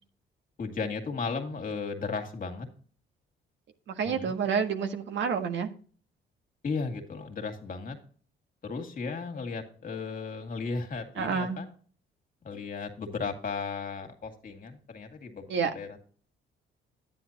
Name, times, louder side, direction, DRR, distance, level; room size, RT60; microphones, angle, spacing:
voice 1, 0.6-2.7 4.0-4.3 6.6-8.0 8.6-11.7 12.4-15.5 15.7-16.2, left 4 dB, 45° left, 2.1 m, -35 dB
voice 2, 3.9-5.7 11.2-11.6 15.5-15.7, right 6 dB, 65° right, 1.5 m, -29 dB
10.0 x 9.7 x 2.9 m
cardioid pair, 90°, 20 cm